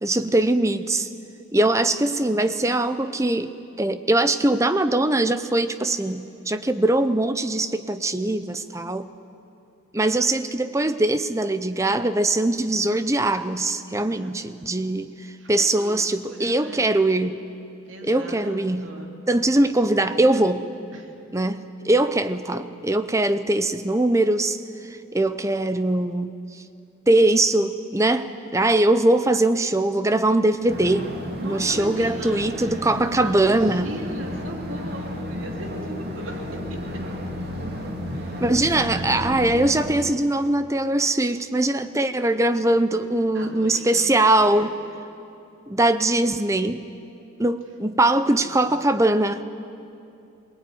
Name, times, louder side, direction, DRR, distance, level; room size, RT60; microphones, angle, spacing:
voice 1, 0.0-1.1 1.5-9.1 9.9-15.1 15.5-17.4 18.0-18.9 19.3-20.7 21.3-24.6 24.8-26.6 27.1-31.1 31.4-33.9 38.4-44.8 45.7-46.9 47.4-49.4, right 2 dB, 15° right, 11 dB, 0.7 m, -21 dB
voice 2, 14.0-14.4 15.4-15.9 16.2-17.0 17.9-19.1 20.9-21.1 31.4-36.8 38.1-38.6 38.9-39.2 43.3-44.8 48.3-48.7, right 1 dB, 85° right, 2 dB, 3.1 m, -39 dB
sound 1, 30.7-39.9, equal, 50° right, 2.9 m, -32 dB
22.0 x 19.5 x 9.5 m, 2.7 s
head